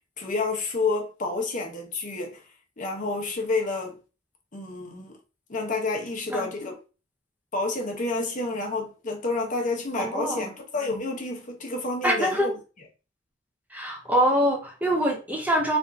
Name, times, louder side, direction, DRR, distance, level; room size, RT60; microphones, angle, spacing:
voice 1, 0.2-2.4 2.8-4.0 4.5-5.2 5.5-6.8 7.5-12.5, left 3 dB, 45° left, 0.9 m, -29 dB
voice 2, 10.0-10.5 12.0-12.5 13.7-15.8, equal, 10° right, 0.5 m, -24 dB
3.5 x 2.5 x 3.6 m
head